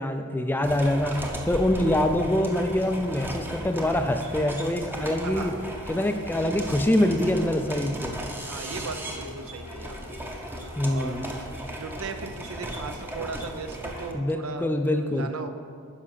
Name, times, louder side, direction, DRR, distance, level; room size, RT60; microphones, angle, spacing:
voice 1, 0.0-5.5 5.9-8.2 10.8-11.2 14.1-15.3, left 1 dB, 10° left, 7 dB, 0.4 m, -25 dB
sound 1, 0.6-14.1, right 1 dB, 10° right, 0.7 m, -36 dB
sound 2, 4.7-11.4, left 3 dB, 75° left, 0.7 m, -47 dB
voice 2, 5.2-5.7 8.5-10.4 10.8-14.7 15.0-15.5, right 4 dB, 70° right, 8 dB, 0.7 m, -38 dB
10.0 x 5.9 x 5.6 m, 2.3 s
head